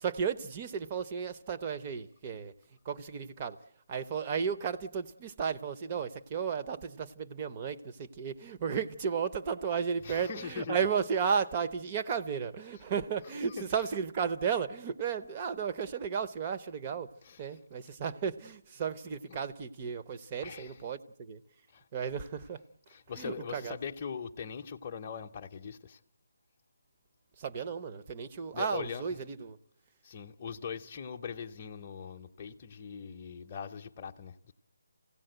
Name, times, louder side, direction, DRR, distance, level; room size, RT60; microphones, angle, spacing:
voice 1, 0.0-2.5 2.9-3.6 3.9-17.1 17.4-21.4 21.9-22.6 23.2-23.8 27.4-29.6, right 6 dB, 25° right, 0.7 m, -34 dB
voice 2, 10.0-10.9 13.4-13.7 17.2-17.6 20.4-20.8 21.7-21.8 22.9-26.0 28.5-29.0 30.0-34.5, left 6 dB, 30° left, 0.7 m, -41 dB
25.0 x 16.5 x 7.9 m
figure-of-eight pair, 160°, 0 cm